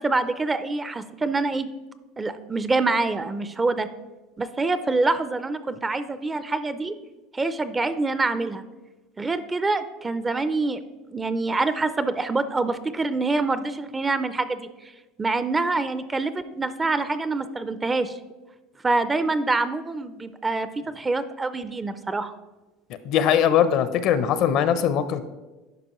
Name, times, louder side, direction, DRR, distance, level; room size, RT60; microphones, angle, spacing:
voice 1, 0.0-1.7 2.2-3.9 4.4-6.9 7.3-8.6 9.2-10.8 11.1-14.7 15.2-18.2 18.8-22.3, right 3 dB, 15° right, 12 dB, 0.4 m, -25 dB
voice 2, 23.0-25.2, left 9 dB, 55° left, 12 dB, 0.6 m, -21 dB
10.5 x 5.0 x 3.0 m, 1.1 s
supercardioid pair, 120°, 0 cm